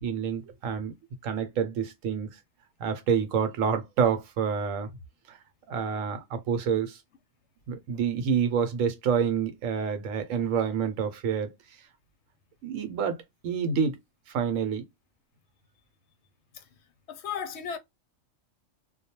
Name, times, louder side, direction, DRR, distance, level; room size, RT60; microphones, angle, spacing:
voice 1, 0.0-0.9 1.2-2.3 2.8-4.9 5.3-5.4 5.7-7.0 7.7-11.5 12.6-13.2 13.4-14.0 14.3-14.8, right 7 dB, 90° right, 1.1 m, -28 dB
voice 2, 17.1-17.8, left 7 dB, 65° left, 0.8 m, -35 dB
2.3 x 2.2 x 2.8 m
omnidirectional pair, 1.3 m